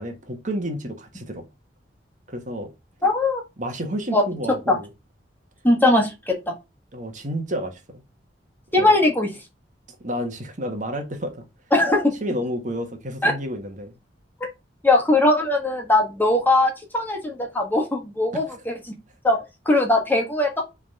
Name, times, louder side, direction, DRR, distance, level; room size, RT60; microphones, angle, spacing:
voice 1, 0.0-1.4 2.3-2.7 3.6-4.9 6.9-8.0 8.8-8.9 10.0-11.4 12.2-14.0, equal, 45° right, 1.5 m, -30 dB
voice 2, 3.0-3.4 4.1-4.2 4.7-4.8 5.6-6.5 8.7-9.3 11.7-12.1 13.2-13.3 14.8-18.7 19.2-19.4 19.6-20.7, left 2 dB, 10° left, 1.7 m, -20 dB
6.4 x 3.6 x 5.4 m
head